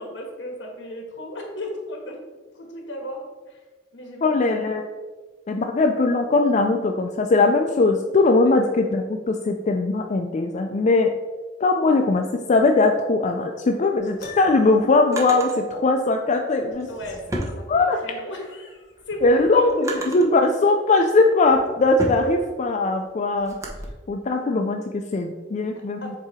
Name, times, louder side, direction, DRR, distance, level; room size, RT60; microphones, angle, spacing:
voice 1, 0.0-2.2 2.5-3.6 3.9-4.4 16.9-19.2 19.5-19.8 25.7-26.2, left 1 dB, 70° left, 2 dB, 1.4 m, -36 dB
voice 2, 4.2-4.9 5.5-11.1 11.6-16.9 17.7-18.0 19.2-23.6 24.1-26.1, left 3 dB, 40° left, 3 dB, 0.4 m, -20 dB
Drawer open or close, 13.9-15.6 16.6-18.2 18.7-20.4 21.0-23.9, right 1 dB, 15° right, 0.9 m, -34 dB
Piano, 14.2-15.0, left 5 dB, 55° left, 0.8 m, -39 dB
7.5 x 2.8 x 4.9 m, 1.3 s
head